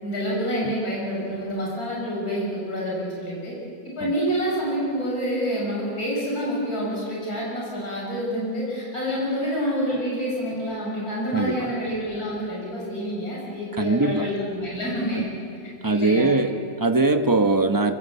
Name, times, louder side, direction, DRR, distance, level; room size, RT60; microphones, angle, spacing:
voice 1, 0.0-3.5 4.0-15.3 15.8-16.3, equal, 50° left, -4 dB, 7.1 m, -27 dB
voice 2, 11.3-11.7 13.8-14.3 15.1-15.3 15.8-18.0, right 3 dB, 15° right, 7 dB, 0.8 m, -21 dB
26.5 x 24.5 x 8.2 m, 2.5 s
omnidirectional pair, 2.0 m